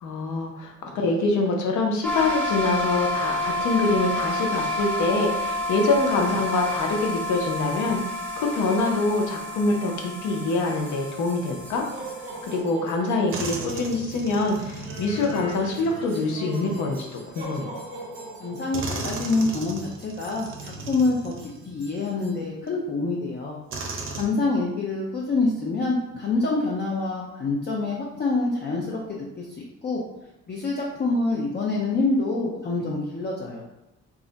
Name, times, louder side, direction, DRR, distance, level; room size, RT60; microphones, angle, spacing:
voice 1, 0.0-11.8 12.5-17.7, left 3 dB, 75° left, 2 dB, 0.7 m, -25 dB
sound 1, 2.0-12.6, left 1 dB, 5° left, 0.7 m, -30 dB
sound 2, 10.5-22.4, right 1 dB, 30° right, 1.0 m, -42 dB
sound 3, 12.6-12.7 13.3-16.9 17.9-18.0 18.7-22.1 22.7-22.8 23.7-24.3, right 3 dB, 45° right, 0.6 m, -36 dB
voice 2, 18.4-23.6 24.1-30.0 30.5-33.6, left 3 dB, 35° left, -3 dB, 0.5 m, -26 dB
2.4 x 2.1 x 3.8 m, 0.93 s
cardioid pair, 90°, 30 cm